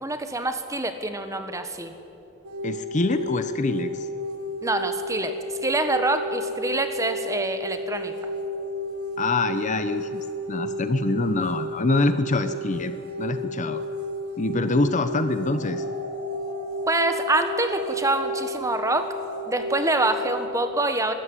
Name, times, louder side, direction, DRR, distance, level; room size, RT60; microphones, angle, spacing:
voice 1, 0.0-1.9 4.6-5.3 5.6-8.1 16.9-19.1 19.4-21.1, right 2 dB, 15° right, 8 dB, 1.3 m, -25 dB
sound 1, 2.4-20.5, equal, 90° right, 1.5 m, -32 dB
voice 2, 2.6-4.1 9.2-12.9 13.2-13.8 14.4-15.8, left 2 dB, 35° left, 10 dB, 0.8 m, -25 dB
sound 2, 15.4-20.4, left 1 dB, 65° left, 5.0 m, -39 dB
22.0 x 13.5 x 9.8 m, 2.8 s
head